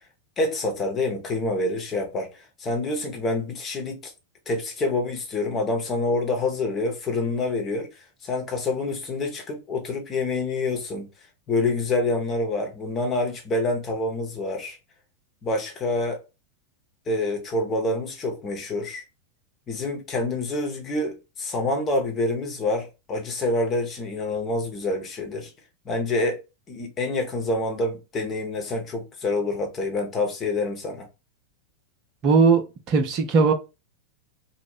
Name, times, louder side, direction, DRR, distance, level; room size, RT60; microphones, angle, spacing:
voice 1, 0.4-4.1 4.5-7.9 8.2-11.1 11.5-14.8 15.4-16.2 17.1-19.0 19.7-25.5 25.8-31.1, left 2 dB, 25° left, 0.9 m, -27 dB
voice 2, 32.2-33.5, right 4 dB, 40° right, 0.6 m, -19 dB
2.9 x 2.0 x 3.7 m
figure-of-eight pair, 90°, 0 cm